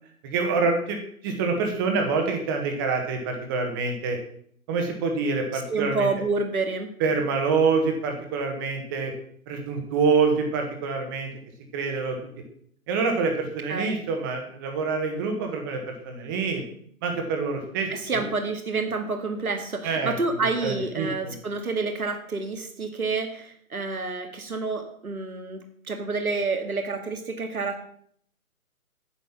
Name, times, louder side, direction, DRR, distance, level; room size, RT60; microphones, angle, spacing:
voice 1, 0.2-4.2 4.7-6.1 7.0-9.1 9.5-11.3 11.7-12.2 12.9-16.6 17.0-18.2 19.8-20.3 20.6-21.1, right 4 dB, 15° right, 4 dB, 1.4 m, -26 dB
voice 2, 5.5-6.9 13.7-14.0 17.9-27.9, right 3 dB, 75° right, 5 dB, 2.1 m, -29 dB
9.9 x 9.1 x 6.0 m, 0.62 s
figure-of-eight pair, 150°, 44 cm